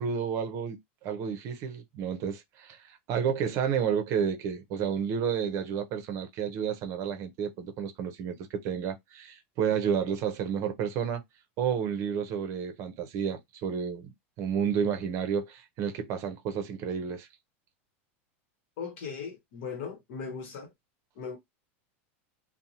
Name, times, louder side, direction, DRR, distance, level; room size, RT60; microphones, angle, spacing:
voice 1, 0.0-11.2 11.6-17.3, right 7 dB, 45° right, 0.6 m, -31 dB
voice 2, 18.8-20.7 21.2-21.4, left 5 dB, 70° left, 0.9 m, -38 dB
2.6 x 2.0 x 2.8 m
supercardioid pair, 135°, 7 cm